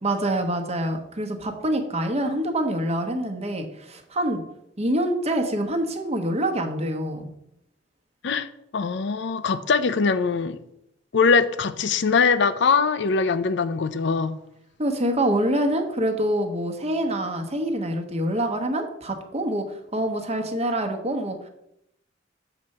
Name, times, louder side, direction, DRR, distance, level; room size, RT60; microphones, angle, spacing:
voice 1, 0.0-4.4 4.8-7.3 14.8-19.6 19.9-21.4, right 1 dB, 35° right, 1.0 m, -25 dB
voice 2, 8.2-10.6 11.1-14.4, left 5 dB, 65° left, 0.5 m, -22 dB
7.0 x 4.3 x 6.4 m
head